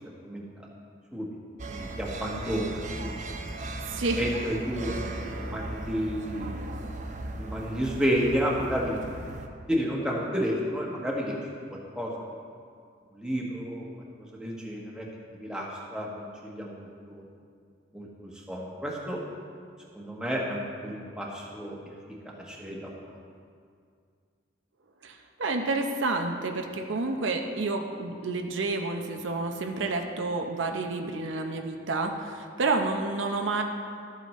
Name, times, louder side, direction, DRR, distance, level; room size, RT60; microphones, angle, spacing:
sound 1, 1.6-9.5, right 2 dB, 40° right, 0.5 m, -37 dB
voice 1, 1.7-3.1 4.1-6.5 7.4-9.3 9.7-11.4 11.7-12.1 13.1-13.9 14.3-15.1 15.3-17.2 17.9-19.2 19.9-21.8 22.2-22.9, equal, 5° right, -3 dB, 1.1 m, -31 dB
voice 2, 3.8-4.2 4.9-5.0 25.0-33.6, right 3 dB, 85° right, 4 dB, 0.7 m, -30 dB
13.0 x 7.6 x 3.2 m, 2.2 s
head